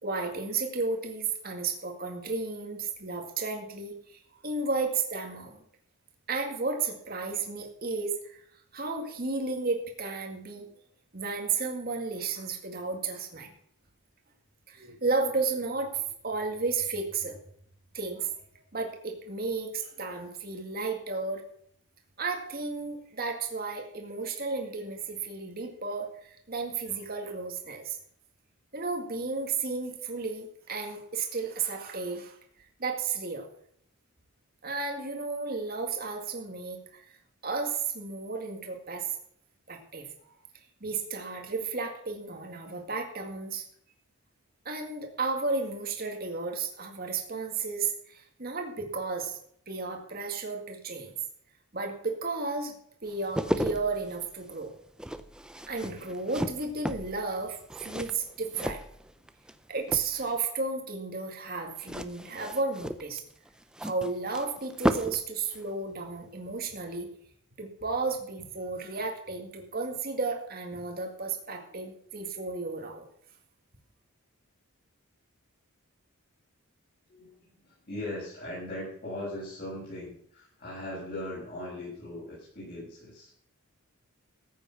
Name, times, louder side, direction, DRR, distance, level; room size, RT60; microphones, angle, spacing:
voice 1, 0.0-5.6 6.3-8.4 8.7-10.7 11.1-13.5 14.7-17.4 17.9-18.3 18.7-21.4 22.2-28.0 28.7-32.4 32.8-33.5 34.6-37.0 37.4-39.2 39.7-40.1 40.8-43.6 44.7-49.4 49.7-51.1 51.7-54.7 55.7-58.8 59.7-63.2 63.8-67.1 67.6-73.0, right 4 dB, 40° right, 2 dB, 2.0 m, -33 dB
sound 1, 53.1-59.5 59.8-60.5 61.8-65.3 65.5-65.7, equal, 5° right, 0.6 m, -34 dB
voice 2, 77.1-83.3, left 1 dB, 40° left, -8 dB, 7.1 m, -39 dB
14.5 x 8.8 x 5.8 m, 0.67 s
head